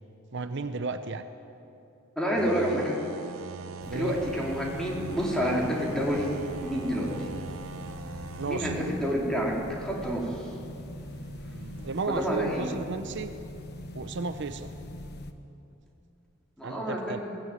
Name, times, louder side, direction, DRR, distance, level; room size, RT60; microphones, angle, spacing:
voice 1, 0.3-1.2 3.9-4.1 8.4-8.7 11.8-13.3 13.9-14.7 16.6-17.2, right 4 dB, 55° right, 9 dB, 0.7 m, -33 dB
voice 2, 2.2-3.0 3.9-6.3 6.6-7.3 8.5-9.5 9.8-10.5 12.1-12.6 16.6-17.2, equal, 5° left, -3 dB, 3.8 m, -28 dB
sound 1, 2.4-12.1, right 4 dB, 85° right, 1.0 m, -43 dB
sound 2, 3.8-15.3, left 1 dB, 50° left, 1.3 m, -42 dB
20.5 x 16.0 x 9.4 m, 2.8 s
head